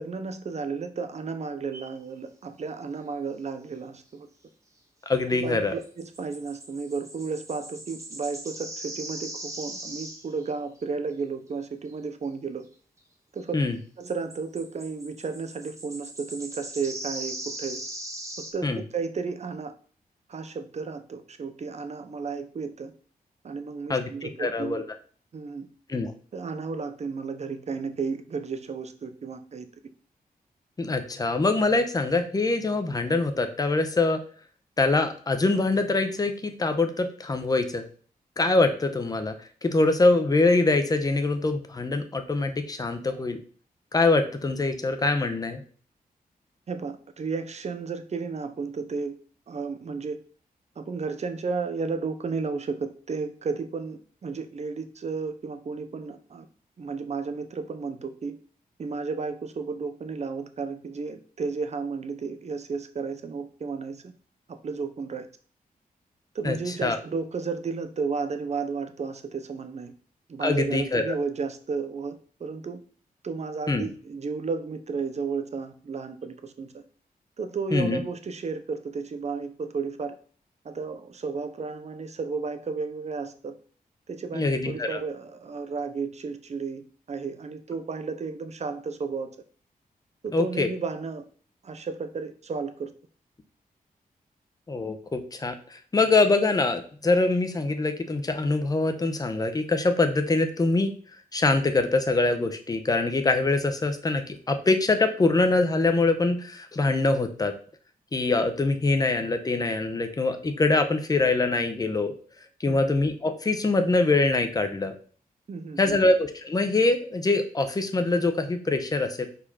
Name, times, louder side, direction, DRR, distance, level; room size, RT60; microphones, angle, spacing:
voice 1, 0.0-4.3 5.3-12.7 13.3-13.6 14.0-17.8 18.5-19.7 20.3-22.9 23.4-24.8 25.3-25.7 26.3-29.7 46.7-49.1 49.5-50.2 50.8-56.5 56.8-58.4 58.8-64.1 64.5-65.3 66.3-69.9 70.3-72.8 73.2-76.8 77.4-80.2 80.6-83.5 84.1-89.3 90.2-91.2 91.6-92.9 112.7-112.8 115.5-116.0, right 4 dB, 45° right, 9 dB, 0.8 m, -33 dB
sound 1, 1.7-2.0 5.8-10.5 10.8-10.9 11.9-12.0 13.4-13.5 14.1-18.5, right 1 dB, 20° right, 1.4 m, -39 dB
voice 2, 5.1-5.7 13.5-13.8 18.6-18.8 23.9-24.8 25.9-26.1 30.8-34.2 34.8-37.8 38.4-39.3 39.6-43.4 43.9-45.6 66.4-67.0 70.4-71.1 73.7-73.9 77.7-78.0 84.3-85.0 90.3-90.7 94.7-100.9 101.3-107.5 108.1-112.1 112.6-115.0 115.8-119.3, left 3 dB, 25° left, 7 dB, 0.8 m, -24 dB
5.5 x 4.3 x 5.5 m, 0.43 s
wide cardioid pair, 165°, 15 cm